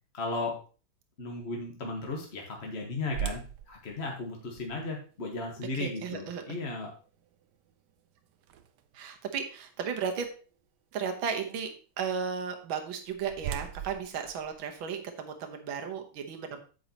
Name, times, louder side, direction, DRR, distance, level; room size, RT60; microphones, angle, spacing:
voice 1, 0.1-0.5 1.2-3.4 3.7-6.9, left 3 dB, 35° left, 0 dB, 1.4 m, -35 dB
sound 1, 3.1-9.1 9.6-9.7 10.3-10.6 12.6-15.3, right 10 dB, 70° right, 1.2 m, -42 dB
voice 2, 5.7-6.4 8.9-10.3 10.9-11.7 12.0-16.6, right 6 dB, 85° right, 4 dB, 1.9 m, -34 dB
9.4 x 7.9 x 2.9 m, 0.37 s
omnidirectional pair, 2.1 m